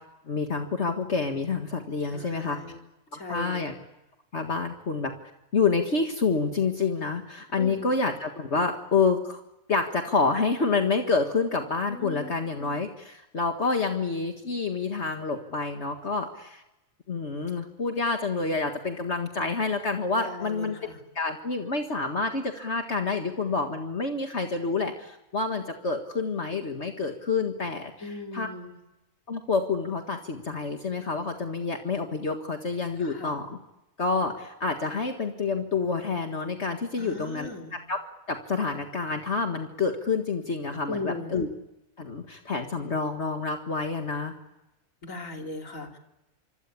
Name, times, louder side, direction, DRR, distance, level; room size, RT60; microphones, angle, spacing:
voice 1, 0.3-2.6 3.1-3.7 4.3-9.4 9.7-16.6 17.1-20.8 21.2-28.5 29.3-33.6 34.0-38.0 38.3-41.5 42.0-44.3, left 4 dB, 55° left, 4 dB, 2.1 m, -28 dB
voice 2, 2.1-2.8 3.1-3.6 7.6-7.9 11.9-12.3 20.1-21.0 28.0-28.8 33.0-33.4 37.0-37.7 40.9-41.4 45.0-46.0, left 3 dB, 75° left, 3 dB, 3.7 m, -38 dB
26.5 x 25.5 x 8.5 m, 0.95 s
omnidirectional pair, 1.4 m